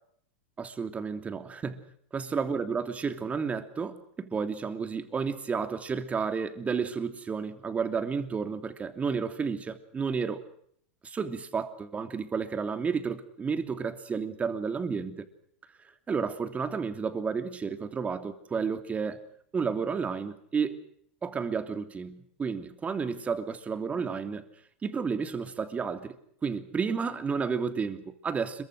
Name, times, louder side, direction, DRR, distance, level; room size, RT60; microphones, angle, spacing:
voice 1, 0.6-1.8 2.1-10.4 11.0-15.3 16.1-19.2 19.5-20.8 21.2-24.5 24.8-26.1 26.4-28.6, right 5 dB, 20° right, 3.0 m, -31 dB
26.0 x 23.5 x 6.4 m
hypercardioid pair, 120°, 7 cm